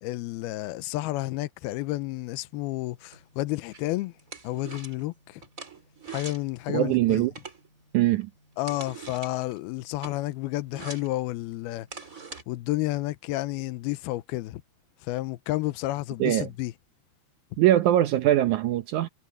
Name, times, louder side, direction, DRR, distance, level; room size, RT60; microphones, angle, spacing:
voice 1, 0.0-4.1 4.4-5.4 6.1-7.2 8.6-11.9 12.5-14.6 15.0-16.7, left 17 dB, 85° left, 2.6 m, -31 dB
sound 1, 2.3-12.4, right 4 dB, 20° right, 3.4 m, -46 dB
voice 2, 6.7-7.3 7.9-8.3 16.2-16.5 17.6-19.1, right 13 dB, 85° right, 1.7 m, -22 dB
omnidirectional pair, 4.6 m